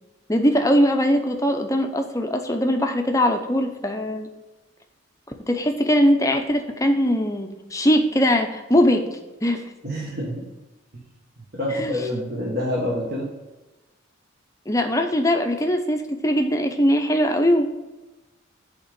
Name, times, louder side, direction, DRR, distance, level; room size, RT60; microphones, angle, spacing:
voice 1, 0.3-4.3 5.5-9.6 11.7-12.0 14.7-17.7, equal, 15° left, 4 dB, 0.7 m, -21 dB
voice 2, 9.8-10.4 11.5-13.2, left 1 dB, 50° right, -5 dB, 1.5 m, -27 dB
8.4 x 3.7 x 6.8 m, 1.1 s
head